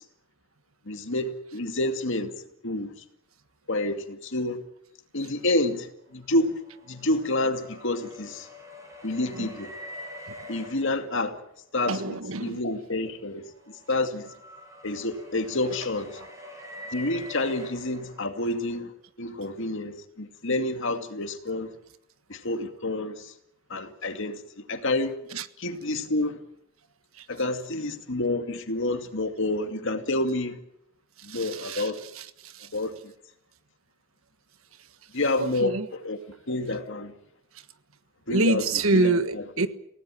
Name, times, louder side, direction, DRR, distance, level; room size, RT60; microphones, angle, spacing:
voice 1, 0.9-2.3 2.6-2.9 3.7-4.6 5.1-5.9 6.1-6.6 6.9-8.5 9.0-9.7 10.5-11.4 11.7-13.4 13.9-14.3 14.8-16.2 16.9-18.9 19.2-21.7 22.3-23.1 23.7-24.4 24.7-25.1 25.6-26.4 27.3-30.6 31.2-32.0 32.7-32.9 35.1-36.2 36.5-37.1 38.3-38.6 38.9-39.2, left 2 dB, 65° left, 2.4 m, -28 dB
sound 1, 6.1-11.7 13.1-18.4, left 1 dB, 15° right, 7.6 m, -45 dB
voice 2, 11.8-12.7 15.7-15.8 16.2-16.3 25.3-25.5 27.2-27.3 31.3-32.7 35.4-35.9 36.7-36.8 38.3-39.8, right 2 dB, 80° right, 1.5 m, -27 dB
29.0 x 17.5 x 7.7 m
head